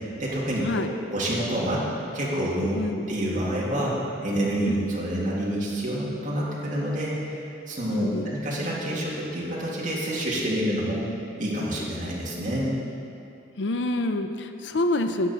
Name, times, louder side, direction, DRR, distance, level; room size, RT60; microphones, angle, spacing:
voice 1, 0.0-1.9 2.1-2.8 3.1-11.0 11.4-12.7, right 1 dB, 45° right, -5 dB, 2.1 m, -28 dB
voice 2, 7.9-8.3 13.6-15.3, left 1 dB, 75° left, 8 dB, 0.5 m, -27 dB
11.5 x 8.4 x 4.1 m, 2.7 s
head